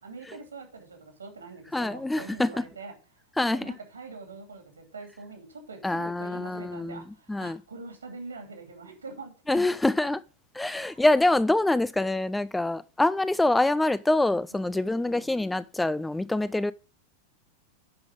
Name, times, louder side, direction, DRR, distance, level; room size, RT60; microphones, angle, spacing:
voice 1, 0.0-2.9 3.4-9.6 10.8-11.0 14.5-15.3, right 4 dB, 75° right, 2.7 m, -44 dB
voice 2, 1.7-2.6 3.4-3.7 5.8-7.6 9.5-10.2 10.5-16.7, left 2 dB, 5° left, 0.3 m, -25 dB
10.5 x 5.2 x 5.0 m
figure-of-eight pair, 90°, 0 cm